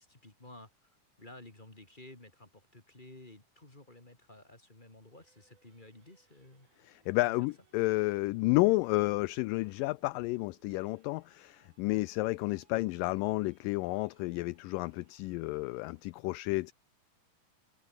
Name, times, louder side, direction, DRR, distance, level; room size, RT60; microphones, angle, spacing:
voice 1, 0.0-6.7, left 1 dB, 15° left, 2.8 m, -54 dB
sound 1, 5.0-16.2, right 5 dB, 60° right, 5.5 m, -73 dB
voice 2, 6.8-16.7, left 22 dB, 80° left, 2.1 m, -31 dB
open air
omnidirectional pair, 4.0 m